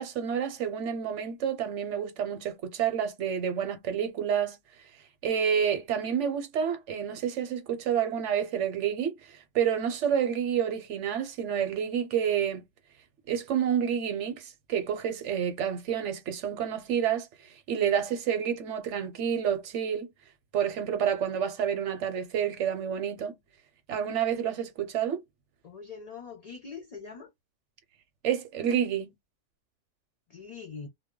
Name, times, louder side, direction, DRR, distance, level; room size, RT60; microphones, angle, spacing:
voice 1, 0.0-4.6 5.2-12.6 13.3-17.3 17.7-20.1 20.5-23.4 23.9-25.2 28.2-29.1, right 8 dB, 80° right, 1.0 m, -29 dB
voice 2, 25.6-27.3 30.3-30.9, left 5 dB, 50° left, 0.5 m, -43 dB
2.2 x 2.1 x 3.6 m
omnidirectional pair, 1.2 m